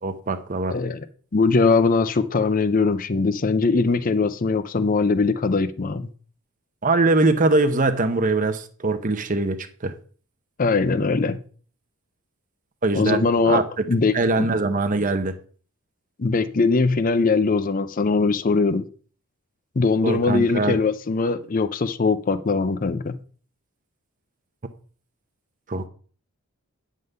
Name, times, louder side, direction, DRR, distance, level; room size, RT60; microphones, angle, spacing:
voice 1, 0.0-0.8 6.8-9.9 12.8-13.8 14.1-15.3 20.0-20.8 25.7-25.9, right 2 dB, 35° right, 8 dB, 0.7 m, -22 dB
voice 2, 0.7-1.0 1.3-6.0 10.6-11.4 12.9-13.6 13.9-14.5 16.2-18.9 19.8-23.2, left 4 dB, 40° left, 12 dB, 0.5 m, -21 dB
9.4 x 3.7 x 6.6 m, 0.44 s
head